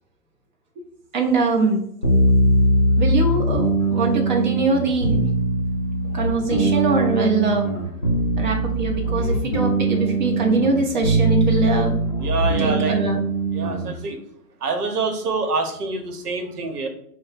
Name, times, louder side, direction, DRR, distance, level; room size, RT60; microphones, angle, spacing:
voice 1, 1.1-1.8 3.0-5.2 6.1-7.7 8.4-12.0 12.6-13.2, right 3 dB, 30° right, 1 dB, 0.7 m, -22 dB
sound 1, 2.0-13.9, right 2 dB, 25° left, 0.4 m, -21 dB
voice 2, 12.2-13.0 13.5-14.2 14.6-16.9, right 4 dB, 75° right, 6 dB, 1.0 m, -26 dB
5.1 x 2.1 x 4.0 m, 0.69 s
hypercardioid pair, 155°, 47 cm